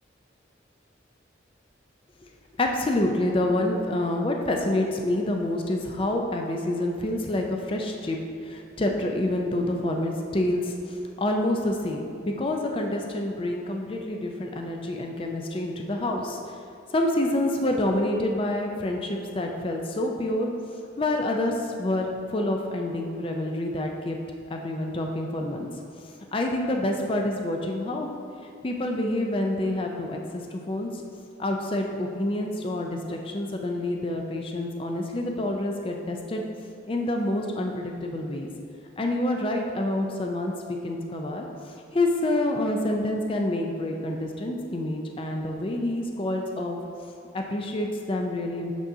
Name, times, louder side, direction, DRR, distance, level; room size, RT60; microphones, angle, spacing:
voice 1, 2.6-8.2 8.4-16.4 16.9-20.5 21.0-24.2 24.5-25.7 26.3-28.1 28.6-30.9 31.4-36.4 36.9-38.5 39.0-41.5 41.9-46.8 47.3-48.7, left 1 dB, 30° left, 2 dB, 0.4 m, -27 dB
6.8 x 6.1 x 2.7 m, 2.6 s
head